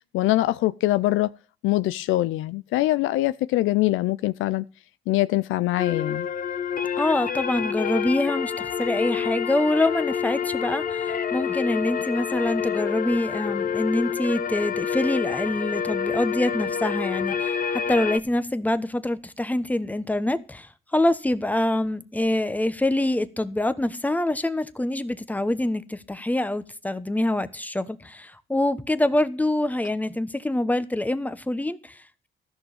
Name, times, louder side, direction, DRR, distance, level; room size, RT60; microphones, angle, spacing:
voice 1, 0.1-1.3 1.6-4.6 5.1-6.3, left 16 dB, 90° left, 0.5 m, -23 dB
sound 1, 5.8-18.2, left 7 dB, 45° left, 0.9 m, -28 dB
voice 2, 7.0-32.3, left 1 dB, 10° left, 1.1 m, -25 dB
14.0 x 6.3 x 7.1 m
cardioid pair, 90°, 20 cm